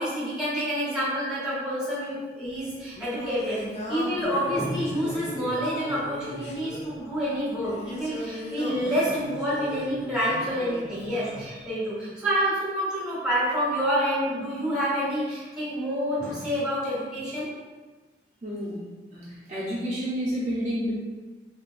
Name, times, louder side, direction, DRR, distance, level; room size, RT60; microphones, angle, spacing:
voice 1, 0.0-3.6 3.9-17.5, equal, 5° right, -9 dB, 1.2 m, -28 dB
Singing, 2.4-11.5, left 1 dB, 40° left, 0.5 m, -38 dB
voice 2, 18.4-18.8 19.1-20.9, equal, 40° right, -8 dB, 0.6 m, -30 dB
3.2 x 2.7 x 2.4 m, 1.3 s
head